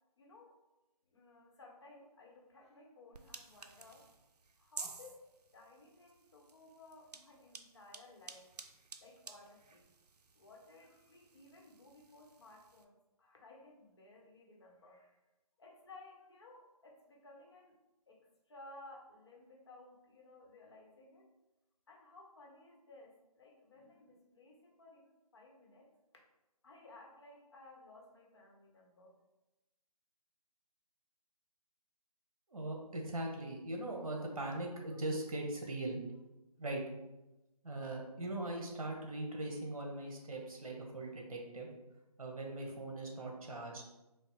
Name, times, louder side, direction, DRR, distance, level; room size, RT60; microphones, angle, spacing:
voice 1, 0.2-0.6 1.0-4.1 4.6-5.2 5.5-8.6 9.0-9.9 10.3-12.9 13.2-15.2 15.6-17.8 18.1-21.3 21.9-25.9 26.6-29.2, left 2 dB, 45° left, -1 dB, 0.8 m, -58 dB
sound 1, 3.1-12.8, right 4 dB, 85° right, 0.4 m, -53 dB
voice 2, 32.5-36.0 36.6-36.8 37.6-41.7 42.2-43.8, right 2 dB, 60° right, 0 dB, 1.0 m, -40 dB
5.2 x 2.0 x 3.0 m, 0.99 s
figure-of-eight pair, 155°, 20 cm